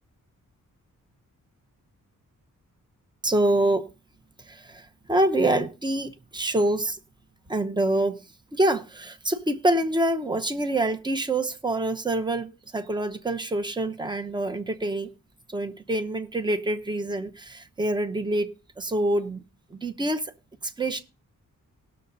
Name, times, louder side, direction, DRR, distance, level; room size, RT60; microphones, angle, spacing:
voice 1, 3.2-3.9 4.4-7.0 7.5-8.2 8.5-15.1 15.5-18.5 18.8-19.4 19.7-20.3 20.6-21.0, right 1 dB, 15° right, 0.8 m, -26 dB
18.0 x 6.7 x 4.0 m
wide cardioid pair, 160°, 32 cm